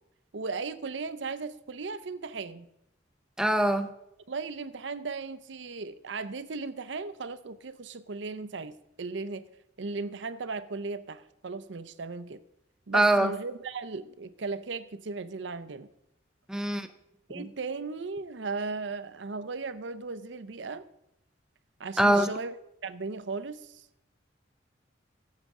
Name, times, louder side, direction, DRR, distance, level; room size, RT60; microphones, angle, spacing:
voice 1, 0.3-2.7 4.3-9.4 9.8-12.4 12.9-15.9 17.3-20.9 21.8-23.9, right 4 dB, 75° right, 14 dB, 0.6 m, -36 dB
voice 2, 3.4-3.9 12.9-13.3 16.5-16.9 17.4-17.5 22.0-22.3, right 1 dB, 5° right, 9 dB, 0.6 m, -23 dB
15.0 x 7.4 x 3.7 m, 0.83 s
head